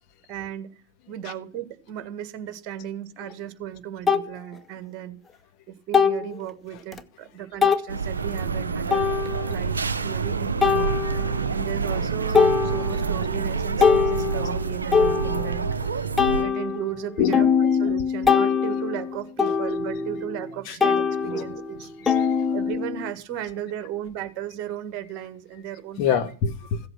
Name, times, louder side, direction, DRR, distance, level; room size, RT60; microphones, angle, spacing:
voice 1, 0.3-0.7 1.1-5.2 5.7-9.1 9.4-10.9 11.5-15.7 16.4-17.5 17.8-26.2, right 11 dB, 40° right, 1.6 m, -35 dB
sound 1, 3.2-3.3 4.1-4.3 5.9-6.3 6.9-7.0 7.6-7.9 8.9-9.5 10.6-11.5 11.9-12.1 12.3-13.2 13.6-15.7 16.2-20.5 20.8-23.1, left 6 dB, 10° left, 0.9 m, -23 dB
sound 2, 7.9-16.4, right 5 dB, 75° right, 0.7 m, -27 dB
voice 2, 15.8-16.3 17.2-17.5 19.5-19.6 20.6-20.8 21.3-21.4 21.8-22.4 25.7-26.8, left 8 dB, 40° left, 1.5 m, -28 dB
15.5 x 7.8 x 5.9 m
figure-of-eight pair, 90°, 0 cm